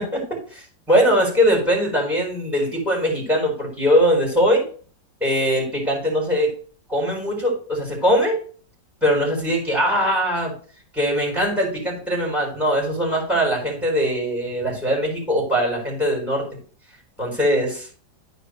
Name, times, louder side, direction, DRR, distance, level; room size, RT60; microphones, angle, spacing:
voice 1, 0.5-4.6 5.2-6.5 6.9-8.4 9.0-10.6 10.9-16.5 17.2-17.8, equal, ahead, -2 dB, 4.3 m, -21 dB
14.0 x 4.9 x 3.2 m, 0.42 s
omnidirectional pair, 1.9 m